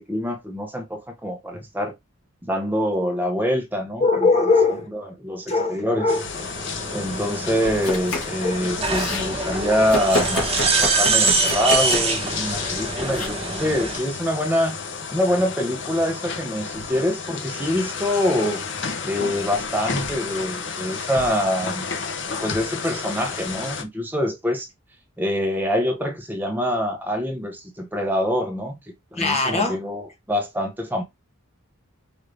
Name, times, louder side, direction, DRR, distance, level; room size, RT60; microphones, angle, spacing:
voice 1, 0.0-1.9 2.4-4.0 4.9-6.1 6.9-14.8 15.1-18.6 19.0-21.9 22.4-24.7 25.2-28.7 29.1-31.0, equal, 10° right, 0.8 m, -25 dB
voice 2, 4.0-4.9 5.5-6.2 8.4-8.6 29.2-29.8, left 3 dB, 30° left, 0.9 m, -21 dB
sound 1, 6.1-23.8, left 5 dB, 55° left, 0.8 m, -32 dB
sound 2, 6.3-14.0, right 4 dB, 30° right, 1.1 m, -25 dB
Domestic sounds home sounds, 7.7-8.4 8.7-9.3 9.9-12.2 13.1-13.3, left 2 dB, 90° left, 1.7 m, -29 dB
5.0 x 2.7 x 3.2 m
head